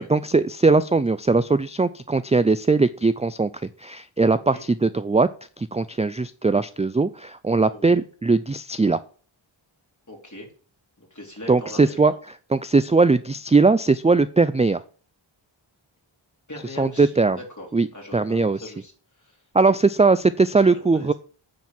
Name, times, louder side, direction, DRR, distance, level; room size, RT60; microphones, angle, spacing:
voice 1, 0.0-5.3 5.6-9.0 11.5-12.1 12.5-14.8 16.8-17.4 17.7-17.9 18.1-18.6 19.5-21.1, right 3 dB, 15° right, 13 dB, 0.3 m, -20 dB
voice 2, 4.3-4.6 7.6-8.0 10.1-10.5 11.0-12.2 16.5-18.9 19.2-19.4 20.6-21.1, left 1 dB, 35° left, -1 dB, 3.7 m, -40 dB
9.2 x 4.5 x 7.5 m, 0.40 s
wide cardioid pair, 65°, 48 cm